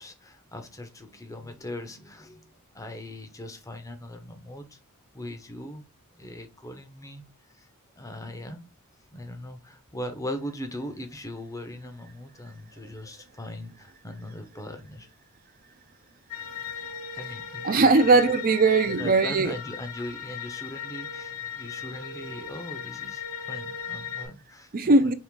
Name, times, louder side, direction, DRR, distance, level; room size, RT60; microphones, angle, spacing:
voice 1, 0.0-4.8 5.1-5.8 6.1-7.2 7.5-7.7 8.0-8.6 9.1-15.1 17.2-18.2 18.8-24.9, left 1 dB, 15° left, 0.7 m, -40 dB
sound 1, 16.3-24.3, left 7 dB, 70° left, 1.2 m, -37 dB
voice 2, 17.6-19.5 24.7-25.1, right 3 dB, 40° right, 0.5 m, -19 dB
3.7 x 3.1 x 4.6 m
head